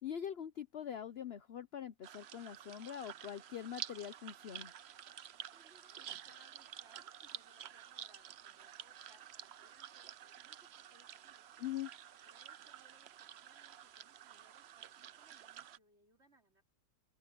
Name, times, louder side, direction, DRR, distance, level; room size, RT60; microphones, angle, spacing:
voice 1, 0.0-4.7 11.6-11.9, left 9 dB, 55° left, 0.7 m, -43 dB
sound 1, 2.0-15.8, right 10 dB, 90° right, 0.5 m, -51 dB
voice 2, 5.5-11.5 12.2-16.6, right 1 dB, 35° right, 4.3 m, -69 dB
open air
omnidirectional pair, 1.9 m